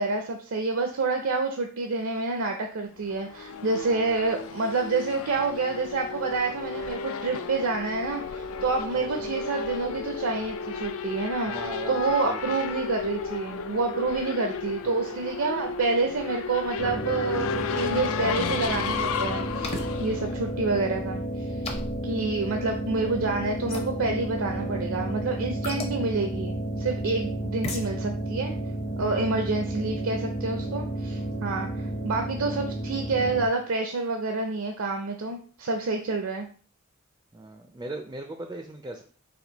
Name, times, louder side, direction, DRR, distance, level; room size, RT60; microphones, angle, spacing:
voice 1, 0.0-17.5 17.7-21.5 22.0-28.6 29.0-36.5, right 3 dB, 70° right, 4 dB, 0.5 m, -28 dB
Race car auto racing / Accelerating revving vroom, 3.0-21.2, left 5 dB, 70° left, 0.4 m, -33 dB
voice 2, 8.9-9.3 11.5-12.6 14.8-15.0 24.7-24.9 29.5-29.7 37.3-39.0, right 2 dB, 15° right, 4 dB, 0.3 m, -39 dB
sound 1, 16.8-33.5, right 1 dB, 45° left, 1.0 m, -32 dB
sound 2, 19.6-19.9 21.6-22.0 23.7-23.9 25.6-25.9 27.6-27.9, left 2 dB, 30° left, 0.7 m, -33 dB
4.3 x 2.5 x 3.9 m, 0.43 s
head